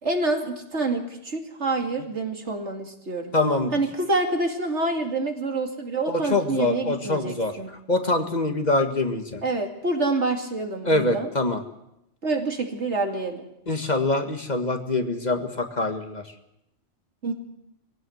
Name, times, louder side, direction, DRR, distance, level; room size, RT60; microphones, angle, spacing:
voice 1, 0.0-3.3 3.7-7.7 9.4-11.3 12.2-13.5 17.2-17.3, right 2 dB, 80° right, 4 dB, 2.9 m, -27 dB
voice 2, 3.3-3.7 6.1-7.6 7.9-9.4 10.8-11.6 13.7-16.3, left 2 dB, 40° left, 6 dB, 1.9 m, -24 dB
23.5 x 17.0 x 8.0 m, 0.83 s
omnidirectional pair, 1.2 m